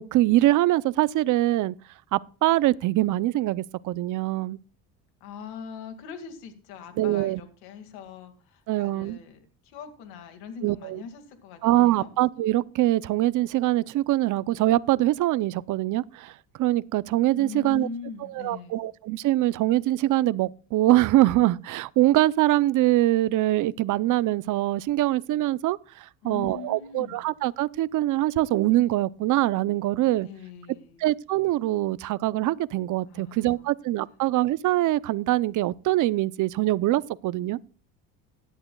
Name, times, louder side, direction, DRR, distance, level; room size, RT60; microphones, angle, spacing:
voice 1, 0.0-1.7 2.1-4.6 7.0-7.4 8.7-9.2 10.6-11.0 11.6-17.9 18.3-30.3 31.0-37.6, right 15 dB, 55° right, 0.6 m, -23 dB
voice 2, 5.2-12.1 17.3-18.8 26.2-27.3 30.2-31.1 33.0-33.7, left 6 dB, 85° left, 2.2 m, -41 dB
17.0 x 11.0 x 2.3 m
cardioid pair, 100°, 36 cm